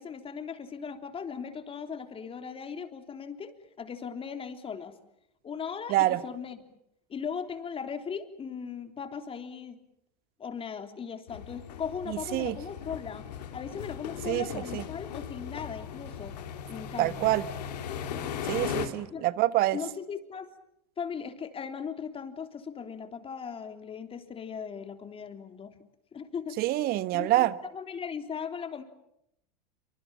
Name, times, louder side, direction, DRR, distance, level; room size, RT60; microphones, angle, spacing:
voice 1, 0.0-5.0 5.4-6.6 7.1-9.8 10.4-13.2 13.5-16.4 16.7-17.3 19.1-19.2 19.7-20.5 21.0-25.8 26.1-26.6 27.1-27.5 27.7-28.8, left 6 dB, 25° left, 7 dB, 3.4 m, -38 dB
voice 2, 5.9-6.2 12.1-12.5 14.2-14.8 17.0-17.5 18.4-19.8 26.6-27.5, right 16 dB, 45° right, 15 dB, 1.4 m, -26 dB
train leave station bell stereo, 11.3-18.9, left 8 dB, 75° left, 3.6 m, -38 dB
27.5 x 25.0 x 7.4 m, 0.78 s
hypercardioid pair, 95°, 21 cm